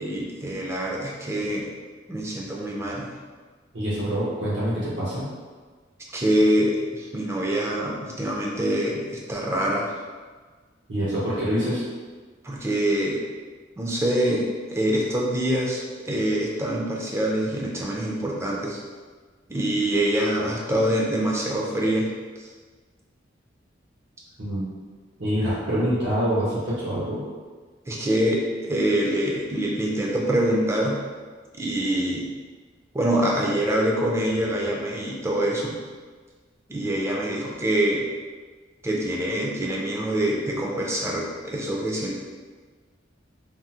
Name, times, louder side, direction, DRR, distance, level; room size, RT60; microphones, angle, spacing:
voice 1, 0.0-1.7 2.1-3.1 6.1-9.9 12.4-13.2 13.8-18.8 19.5-22.1 22.4-22.5 27.9-31.0 31.6-32.3 32.9-35.8 36.7-38.1 38.8-42.2, right 1 dB, 15° right, -3 dB, 0.4 m, -25 dB
voice 2, 3.7-5.2 10.9-11.8 24.4-24.7 25.2-27.2, equal, 70° right, -9 dB, 0.8 m, -25 dB
3.5 x 2.0 x 2.8 m, 1.4 s
head